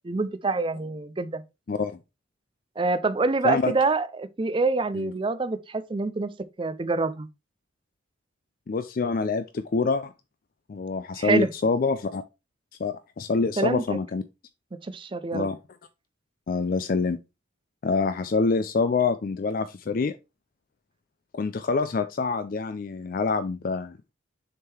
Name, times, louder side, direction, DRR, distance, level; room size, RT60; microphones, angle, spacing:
voice 1, 0.0-1.4 2.8-7.3 11.2-11.5 13.6-13.8 14.8-15.5, right 3 dB, 25° right, 0.4 m, -26 dB
voice 2, 8.7-10.1 10.7-12.2 12.8-14.2 15.3-15.6 16.5-17.2 17.8-20.2 21.3-24.0, left 4 dB, 45° left, 0.4 m, -26 dB
6.6 x 3.7 x 4.3 m
head